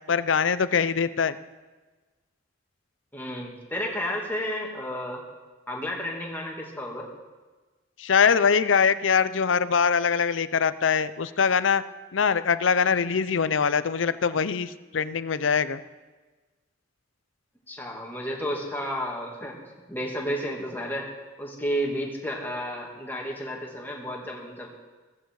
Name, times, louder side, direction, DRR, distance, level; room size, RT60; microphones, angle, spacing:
voice 1, 0.1-1.4 8.0-11.8 12.1-15.8, left 6 dB, 75° left, 14 dB, 0.6 m, -23 dB
voice 2, 3.1-5.2 5.7-7.1 17.7-19.6 19.9-21.1 21.4-24.7, equal, 10° left, -2 dB, 2.5 m, -32 dB
15.0 x 14.5 x 4.8 m, 1.3 s
head